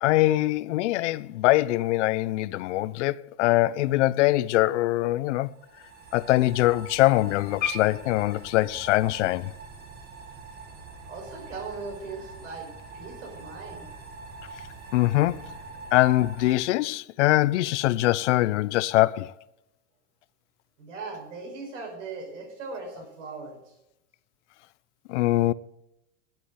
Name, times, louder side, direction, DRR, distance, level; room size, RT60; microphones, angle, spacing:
voice 1, 0.0-5.5 6.1-9.5 14.9-15.6 15.9-19.3 25.1-25.5, left 17 dB, 75° left, 0.6 m, -23 dB
sound 1, 5.4-16.5, right 4 dB, 25° right, 1.7 m, -44 dB
sound 2, 7.5-13.6, left 7 dB, 30° left, 1.2 m, -41 dB
voice 2, 11.1-13.9 20.8-23.6, right 4 dB, 90° right, 5.3 m, -39 dB
12.0 x 7.7 x 7.7 m
supercardioid pair, 160°, 36 cm